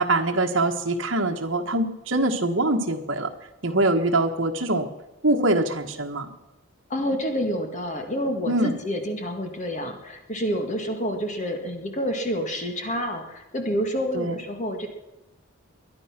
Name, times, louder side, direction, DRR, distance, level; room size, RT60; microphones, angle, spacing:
voice 1, 0.0-3.3 3.6-4.9 5.2-6.3 8.5-8.8 14.1-14.3, right 2 dB, 60° right, 2 dB, 1.4 m, -23 dB
voice 2, 6.9-14.9, equal, 35° left, 4 dB, 1.8 m, -28 dB
22.0 x 11.0 x 6.0 m, 1.0 s
head